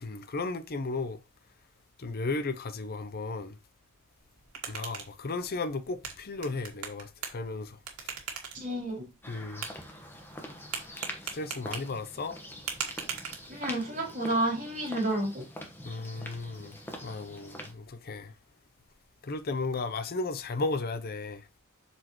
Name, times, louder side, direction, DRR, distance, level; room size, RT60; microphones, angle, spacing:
voice 1, 0.0-1.2 2.0-3.6 4.7-7.8 9.3-9.6 10.9-11.0 11.3-12.4 15.8-16.7 17.0-18.3 19.2-21.4, left 3 dB, 45° left, 0.6 m, -34 dB
sound 1, 4.2-13.9, right 7 dB, 75° right, 1.7 m, -42 dB
voice 2, 8.5-9.1 13.5-15.4, right 1 dB, 35° right, 3.2 m, -30 dB
sound 2, 9.2-17.7, equal, 10° left, 1.2 m, -45 dB
7.6 x 4.4 x 3.0 m
head